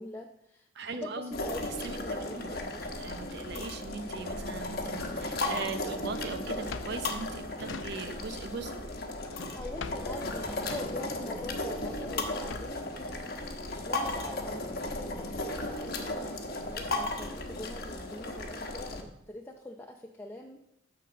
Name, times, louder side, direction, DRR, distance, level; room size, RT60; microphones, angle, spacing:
voice 1, 0.0-1.6 1.9-2.9 9.5-20.6, left 1 dB, 10° left, 1 dB, 0.6 m, -43 dB
voice 2, 0.7-1.3 1.8-2.6 3.0-8.7, right 4 dB, 60° right, 8 dB, 0.7 m, -39 dB
sound 1, 1.3-19.0, left 2 dB, 50° left, 1.1 m, -35 dB
Drawer open or close, 5.3-8.4 8.7-12.9, left 5 dB, 70° left, 0.5 m, -45 dB
11.5 x 3.9 x 6.8 m, 0.83 s
head